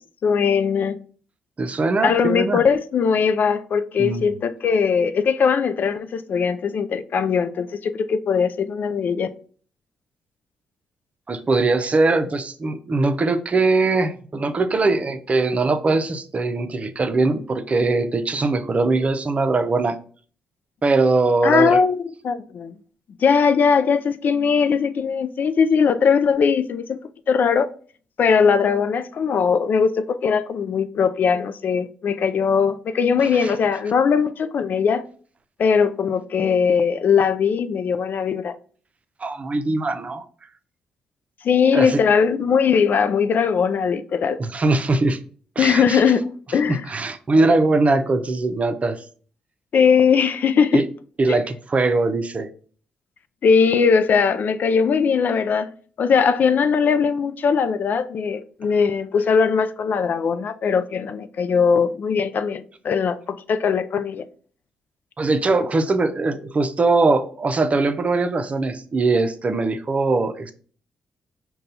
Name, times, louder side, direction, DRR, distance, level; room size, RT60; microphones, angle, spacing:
voice 1, 0.2-1.0 2.0-9.3 21.4-22.7 23.2-27.0 27.3-27.7 28.2-35.0 35.6-38.6 41.4-44.4 45.6-46.9 49.7-50.8 51.3-51.4 53.4-55.7 56.0-64.2, left 6 dB, 55° left, 0.4 m, -20 dB
voice 2, 1.6-2.6 4.0-4.2 11.3-19.9 20.8-21.8 33.2-33.5 39.2-40.2 41.7-42.0 44.4-45.2 45.6-46.0 46.7-49.0 50.7-50.8 51.2-52.5 65.2-70.5, right 3 dB, 40° right, 0.6 m, -21 dB
5.3 x 2.3 x 4.0 m
hypercardioid pair, 50°, 4 cm